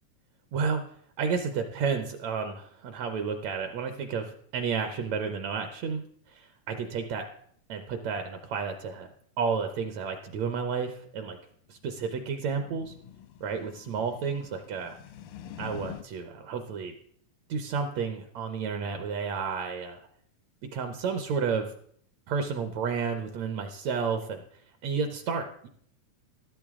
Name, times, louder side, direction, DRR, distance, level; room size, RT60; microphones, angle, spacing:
voice 1, 0.5-0.8 1.2-7.3 7.7-9.1 9.4-11.4 11.7-13.0 13.4-15.0 15.6-16.9 17.5-20.1 20.7-21.7 22.3-25.7, right 5 dB, 70° right, 7 dB, 1.8 m, -31 dB
sound 1, 11.7-16.0, left 9 dB, 85° left, 2.5 m, -46 dB
13.5 x 13.0 x 3.6 m, 0.63 s
omnidirectional pair, 3.8 m